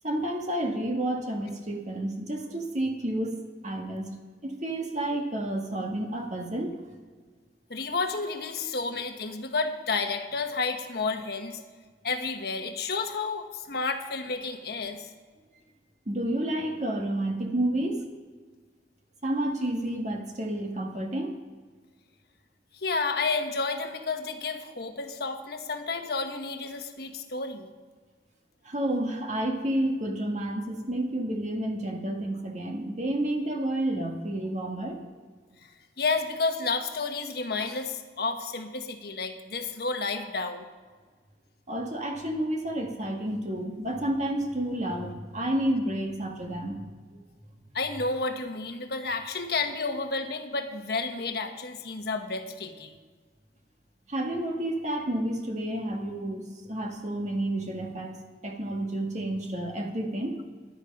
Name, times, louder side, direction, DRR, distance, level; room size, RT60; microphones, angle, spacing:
voice 1, 0.0-4.1 4.4-6.8 16.1-18.1 19.2-21.4 28.6-35.0 41.7-46.8 54.1-58.1 58.4-60.4, right 1 dB, 40° right, 2 dB, 1.7 m, -30 dB
voice 2, 7.7-11.6 12.0-15.1 22.8-27.7 36.0-40.7 47.7-52.9, left 4 dB, 60° left, 5 dB, 1.3 m, -31 dB
13.0 x 11.5 x 5.3 m, 1.5 s
head